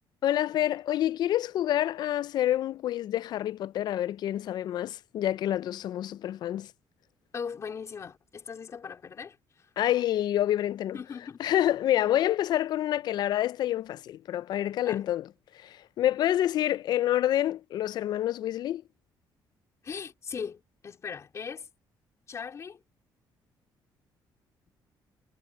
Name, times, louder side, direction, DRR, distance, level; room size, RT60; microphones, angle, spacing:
voice 1, 0.2-6.7 9.8-11.0 11.4-15.3 15.5-18.8, left 12 dB, 60° left, 0.4 m, -27 dB
voice 2, 7.3-9.7 10.9-11.4 14.9-15.0 19.8-21.7 22.3-22.8, left 6 dB, 40° left, 4.1 m, -39 dB
cardioid pair, 140°, 8 cm